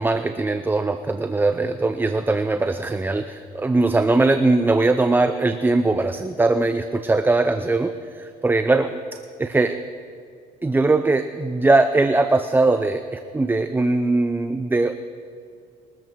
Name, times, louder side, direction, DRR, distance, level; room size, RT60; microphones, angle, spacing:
voice 1, 0.0-9.0 9.4-9.8 10.6-14.9, right 2 dB, 10° right, 9 dB, 0.5 m, -20 dB
21.5 x 13.5 x 4.6 m, 2.4 s
cardioid pair, 110°, 17 cm